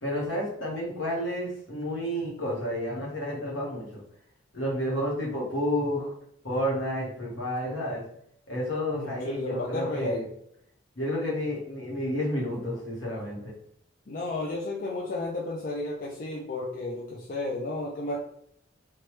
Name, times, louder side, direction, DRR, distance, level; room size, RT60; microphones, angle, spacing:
voice 1, 0.0-4.0 4.5-6.1 6.4-8.1 8.5-10.2 11.0-13.5, equal, 70° left, -3 dB, 1.1 m, -30 dB
voice 2, 8.9-10.3 14.1-18.2, left 2 dB, 45° left, -2 dB, 0.4 m, -32 dB
3.2 x 2.3 x 3.0 m, 0.70 s
head